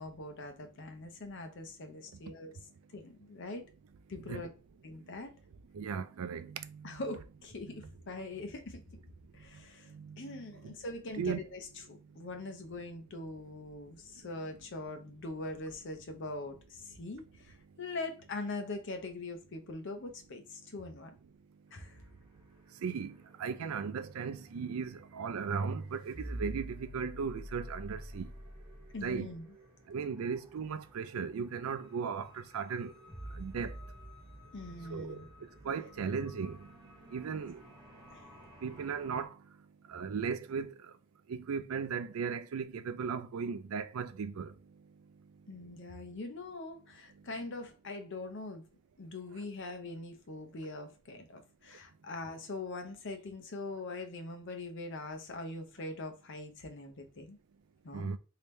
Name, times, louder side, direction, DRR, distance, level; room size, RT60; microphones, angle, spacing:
voice 1, 0.0-2.5 2.9-3.6 4.1-4.5 4.8-5.3 6.8-8.8 9.3-21.1 21.7-22.0 28.9-29.5 34.5-35.3 38.1-38.2 45.5-48.7 49.0-57.4 57.8-58.1, left 2 dB, 60° left, 0.7 m, -42 dB
voice 2, 5.7-7.0 7.6-7.9 9.9-10.7 11.1-11.4 22.8-28.3 29.0-29.3 29.9-32.9 33.3-33.7 34.9-37.7 38.6-39.4 39.9-40.9 41.3-44.5 57.9-58.2, right 6 dB, 85° right, 0.4 m, -37 dB
sound 1, 21.7-39.2, right 1 dB, 20° right, 1.2 m, -49 dB
3.4 x 2.8 x 3.1 m
head